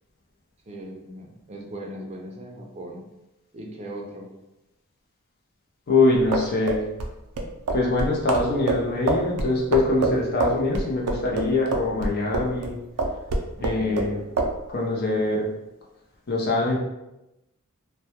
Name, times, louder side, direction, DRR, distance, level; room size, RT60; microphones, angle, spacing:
voice 1, 0.7-3.0 3.5-4.3 12.5-12.7 13.6-14.2, right 1 dB, 30° right, 0 dB, 0.4 m, -39 dB
voice 2, 5.9-6.9 7.7-12.7 13.6-14.2 14.7-15.5 16.3-16.8, left 2 dB, 45° left, -2 dB, 0.5 m, -23 dB
sound 1, 6.1-12.7 13.0-14.1 14.4-14.5, right 3 dB, 90° right, 0.4 m, -25 dB
2.2 x 2.1 x 2.8 m, 0.93 s
head